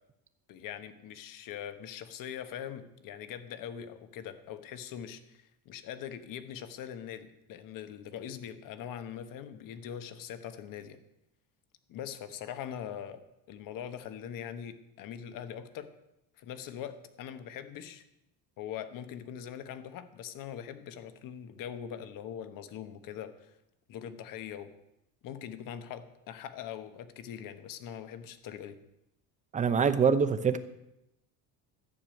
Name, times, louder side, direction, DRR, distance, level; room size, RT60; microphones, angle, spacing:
voice 1, 0.5-11.0 11.9-13.2 13.5-15.9 16.4-18.0 18.6-23.6 23.9-24.7 25.2-28.7, left 9 dB, 55° left, 10 dB, 1.3 m, -42 dB
voice 2, 29.5-30.6, right 6 dB, 20° right, 11 dB, 0.7 m, -24 dB
12.5 x 6.9 x 9.0 m, 0.87 s
cardioid pair, 160°, 39 cm